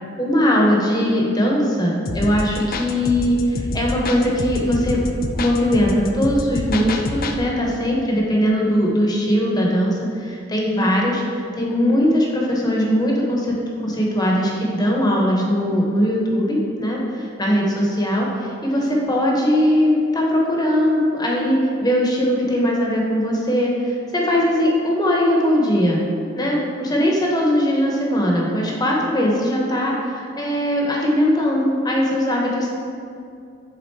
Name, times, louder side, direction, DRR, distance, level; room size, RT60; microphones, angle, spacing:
voice 1, 0.2-5.0 5.3-13.6 13.8-26.0 26.3-32.7, equal, 20° left, -2 dB, 0.9 m, -20 dB
sound 1, 2.1-7.4, left 2 dB, 50° left, 0.5 m, -27 dB
7.8 x 3.7 x 4.6 m, 2.5 s
head